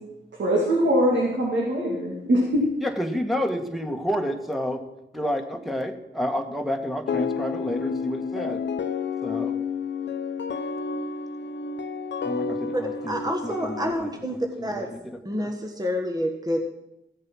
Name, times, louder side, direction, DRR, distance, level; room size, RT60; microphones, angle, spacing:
voice 1, 0.4-2.7, equal, 75° right, -2 dB, 2.4 m, -22 dB
voice 2, 2.8-4.8 5.1-8.6 9.2-9.5 12.2-15.5, equal, ahead, 3 dB, 1.7 m, -30 dB
sound 1, 7.1-13.9, left 5 dB, 70° left, 0.8 m, -30 dB
voice 3, 12.7-14.9 15.2-16.7, equal, 20° right, 3 dB, 1.5 m, -28 dB
15.0 x 7.5 x 6.2 m, 0.92 s
cardioid pair, 55°, 19 cm